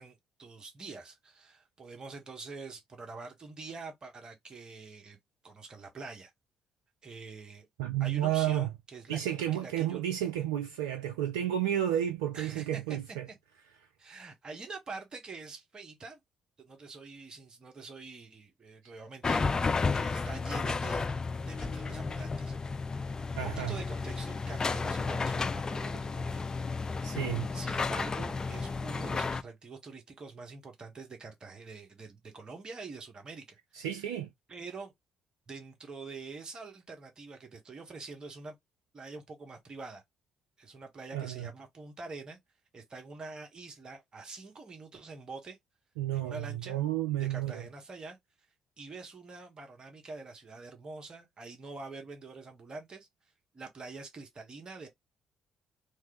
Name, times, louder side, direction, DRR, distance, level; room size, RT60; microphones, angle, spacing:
voice 1, 0.0-5.2 5.4-6.3 7.0-7.7 8.0-9.2 9.5-10.1 12.3-13.0 14.0-16.2 16.6-19.5 19.9-21.0 21.5-22.6 23.3-26.4 27.5-34.0 34.5-34.9 35.5-38.5 38.9-40.0 40.6-42.4 42.7-45.6 46.1-46.8 47.2-48.2 48.8-53.1 53.5-54.9, right 3 dB, 35° right, 1.1 m, -45 dB
voice 2, 7.8-8.7 9.1-13.3 23.4-23.8 27.0-27.5 33.7-34.3 41.1-41.5 46.0-47.7, right 11 dB, 80° right, 0.3 m, -31 dB
sound 1, 19.2-29.4, left 4 dB, 30° left, 0.4 m, -32 dB
3.1 x 2.4 x 2.9 m
hypercardioid pair, 45°, 2 cm